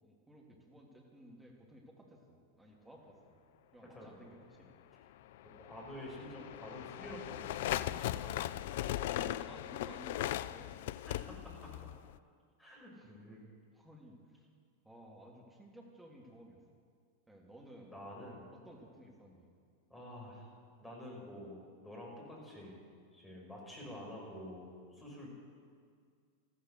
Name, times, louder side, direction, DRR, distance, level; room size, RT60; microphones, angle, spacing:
voice 1, 0.0-3.2 3.7-4.7 9.1-10.8 12.9-13.1 13.7-14.4 14.8-16.6 17.3-19.5, equal, 5° right, -1 dB, 2.8 m, -56 dB
sound 1, 5.3-12.2, left 13 dB, 55° left, 0.3 m, -39 dB
voice 2, 5.6-8.3 9.1-9.2 11.1-11.7 12.6-13.5 17.9-18.4 19.9-20.5 20.8-22.8 23.1-25.3, left 1 dB, 10° left, -2 dB, 5.4 m, -48 dB
14.0 x 13.5 x 6.5 m, 2.1 s
figure-of-eight pair, 90°, 0 cm